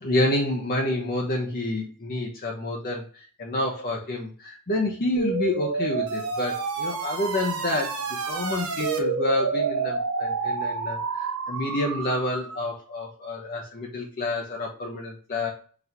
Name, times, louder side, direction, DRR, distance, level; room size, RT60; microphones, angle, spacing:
voice 1, 0.0-15.5, left 1 dB, 45° left, 0 dB, 0.7 m, -28 dB
sound 1, 5.2-12.6, right 4 dB, 80° right, 0.7 m, -29 dB
4.0 x 3.3 x 2.8 m, 0.40 s
head